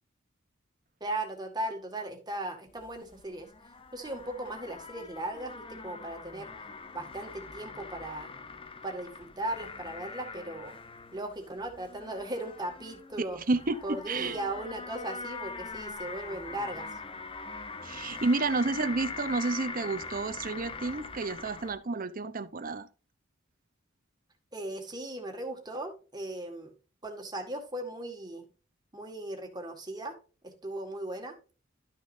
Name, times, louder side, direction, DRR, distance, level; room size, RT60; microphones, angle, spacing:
voice 1, 1.0-3.5 3.9-6.5 6.9-8.3 8.8-10.8 11.1-13.4 13.8-16.9 24.5-26.7 27.0-28.5 28.9-30.2 30.4-31.4, right 1 dB, 20° right, 1.9 m, -37 dB
sound 1, 2.7-21.8, left 4 dB, 30° left, 0.7 m, -43 dB
voice 2, 13.3-14.4 17.8-22.9, right 3 dB, 45° right, 0.8 m, -30 dB
12.5 x 6.5 x 2.7 m
head